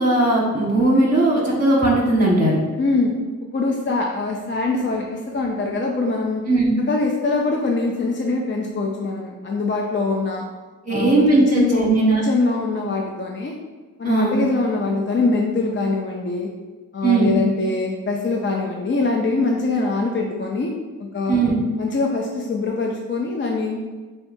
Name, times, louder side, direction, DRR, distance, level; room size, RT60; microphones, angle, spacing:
voice 1, 0.0-2.6 6.5-6.7 10.8-12.2 14.0-14.3 17.0-17.3 21.3-21.6, right 2 dB, 20° right, -3 dB, 1.2 m, -18 dB
voice 2, 2.8-3.1 3.5-6.4 6.9-10.4 10.9-11.9 12.2-13.5 14.0-16.5 16.9-20.7 21.1-21.4 21.8-23.8, left 3 dB, 35° left, 0 dB, 0.4 m, -23 dB
6.5 x 2.3 x 2.6 m, 1.3 s
wide cardioid pair, 80°, 36 cm